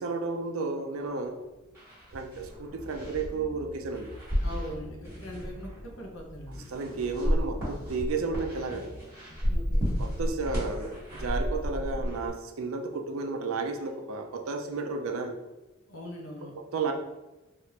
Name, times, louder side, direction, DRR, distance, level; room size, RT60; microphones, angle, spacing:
voice 1, 0.0-1.4 2.1-4.1 6.7-8.9 10.0-15.4 16.7-16.9, right 4 dB, 85° right, 5 dB, 0.4 m, -32 dB
sound 1, 1.7-12.3, equal, 10° right, 1.3 m, -33 dB
sound 2, 2.7-4.2 4.5-5.7 6.3-6.6 6.9-9.0 9.3-10.5 11.1-11.4 11.7-12.3, equal, 20° left, 0.4 m, -47 dB
voice 2, 4.4-6.6 9.5-9.9 15.9-16.5, equal, 80° left, 1 dB, 0.7 m, -41 dB
3.2 x 2.4 x 2.8 m, 1.0 s
head